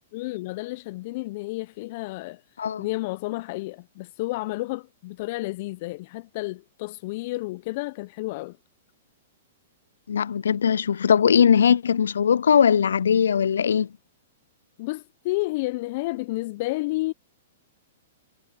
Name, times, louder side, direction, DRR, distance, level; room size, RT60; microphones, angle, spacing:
voice 1, 0.1-2.4 2.8-8.6 14.8-17.1, left 21 dB, 50° left, 0.8 m, -31 dB
voice 2, 10.1-13.9, left 7 dB, 75° left, 0.4 m, -20 dB
hypercardioid pair, 110°, 0 cm